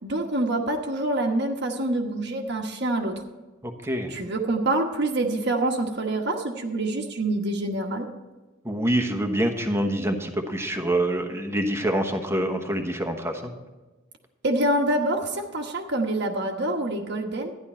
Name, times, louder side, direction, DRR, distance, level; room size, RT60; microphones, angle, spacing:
voice 1, 0.0-3.1 4.1-8.1 14.4-17.5, right 1 dB, 60° right, 2 dB, 1.2 m, -26 dB
voice 2, 3.6-4.1 8.6-13.5, right 1 dB, 15° right, 5 dB, 1.1 m, -26 dB
12.5 x 10.5 x 4.3 m, 1.2 s
head